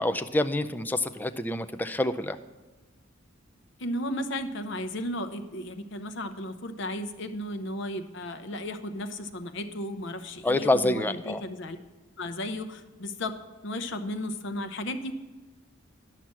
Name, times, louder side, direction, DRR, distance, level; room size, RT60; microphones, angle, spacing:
voice 1, 0.0-2.4 10.4-11.4, left 1 dB, 10° left, 8 dB, 0.4 m, -27 dB
voice 2, 3.8-11.8 12.2-13.4 13.6-15.2, left 1 dB, 65° left, 8 dB, 0.8 m, -34 dB
11.0 x 5.8 x 7.4 m, 1.2 s
head